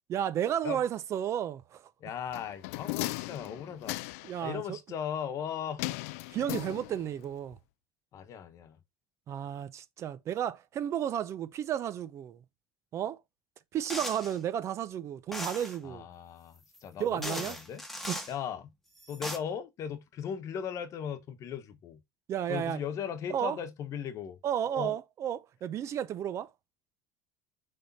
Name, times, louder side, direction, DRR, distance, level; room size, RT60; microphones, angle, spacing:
voice 1, 0.1-1.9 4.2-4.8 6.3-7.6 9.3-12.4 12.9-13.2 13.7-16.0 17.0-17.6 18.1-18.2 22.3-22.8 23.3-23.6 24.4-26.5, right 10 dB, 40° right, 0.6 m, -33 dB
voice 2, 2.0-4.0 4.4-5.8 8.1-8.8 15.8-17.8 18.3-18.7 19.1-22.0 22.5-24.4 24.7-24.9, left 8 dB, 40° left, 1.1 m, -37 dB
sound 1, 2.3-4.4 5.8-7.2 7.5-7.6, left 20 dB, 80° left, 0.4 m, -37 dB
sound 2, 13.9-14.4 15.3-15.8 16.7-16.8 17.2-18.3 19.0-19.4, left 1 dB, 5° left, 1.3 m, -38 dB
6.7 x 3.5 x 4.1 m
supercardioid pair, 135°, 8 cm